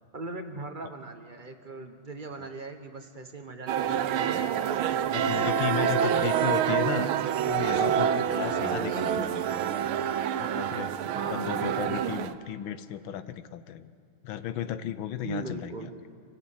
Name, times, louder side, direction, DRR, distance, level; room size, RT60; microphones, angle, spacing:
voice 1, 0.1-6.6 11.0-11.7 15.2-15.9, right 3 dB, 35° right, 6 dB, 0.9 m, -40 dB
sound 1, 3.7-12.3, right 9 dB, 90° right, 1.6 m, -27 dB
voice 2, 5.1-9.6 10.3-10.9 11.3-13.9 14.2-15.9, left 10 dB, 75° left, 13 dB, 1.4 m, -34 dB
25.0 x 16.0 x 8.2 m, 2.3 s
omnidirectional pair, 2.3 m